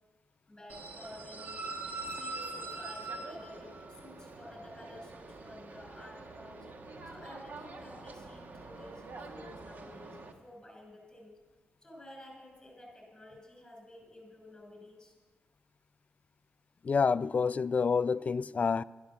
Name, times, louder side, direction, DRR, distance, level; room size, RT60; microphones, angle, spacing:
voice 1, 0.5-1.6 2.1-6.7 7.0-11.3 11.8-15.1, left 1 dB, 15° left, 5.1 m, -51 dB
sound 1, 0.7-10.3, right 3 dB, 50° right, 1.2 m, -44 dB
voice 2, 16.8-18.8, left 5 dB, 40° left, 0.3 m, -28 dB
11.5 x 10.0 x 7.2 m
cardioid pair, 90°, 4 cm